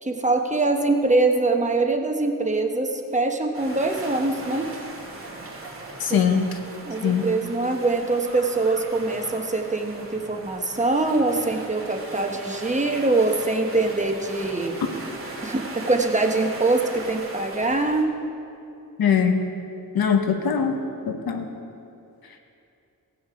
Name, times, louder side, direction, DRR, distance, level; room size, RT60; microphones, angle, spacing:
voice 1, 0.0-4.7 6.1-6.2 6.9-14.8 15.4-18.1, right 2 dB, 20° right, 3 dB, 1.0 m, -23 dB
sound 1, 3.5-18.0, right 2 dB, 35° right, 2.3 m, -39 dB
voice 2, 6.0-6.5 7.0-7.3 19.0-19.5 19.9-20.7 21.1-21.5, left 7 dB, 80° left, 5 dB, 1.1 m, -21 dB
17.5 x 6.1 x 5.0 m, 2.6 s
wide cardioid pair, 100°, 36 cm